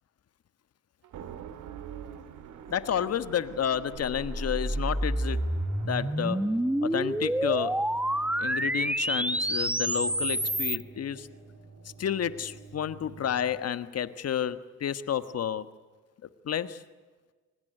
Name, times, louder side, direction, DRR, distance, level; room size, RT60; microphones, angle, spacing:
sound 1, 1.0-6.7, right 9 dB, 75° right, 2.0 m, -45 dB
voice 1, 2.7-5.5 5.8-6.4 6.8-7.8 8.4-11.3 12.0-15.7 16.4-16.8, left 9 dB, 55° left, 13 dB, 1.5 m, -30 dB
sound 2, 4.1-10.8, right 1 dB, 5° right, 1.2 m, -28 dB
Pad Double Chord Stretch, 5.5-13.6, right 4 dB, 50° right, 7.6 m, -49 dB
24.0 x 20.0 x 9.3 m, 1.3 s
cardioid pair, 90°, 30 cm